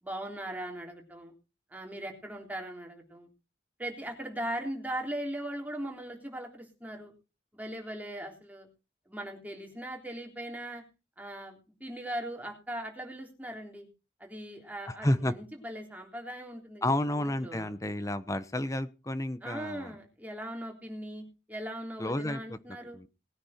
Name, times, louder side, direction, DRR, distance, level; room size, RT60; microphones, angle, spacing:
voice 1, 0.0-1.3 1.7-3.3 3.8-7.1 7.5-8.7 9.1-10.8 11.2-13.9 14.2-17.8 19.4-23.0, right 1 dB, 10° right, 1 dB, 3.5 m, -39 dB
voice 2, 15.0-15.3 16.8-19.9 22.0-22.6 22.9-23.1, left 1 dB, 20° left, 13 dB, 1.0 m, -31 dB
20.0 x 9.5 x 4.3 m, 0.32 s
head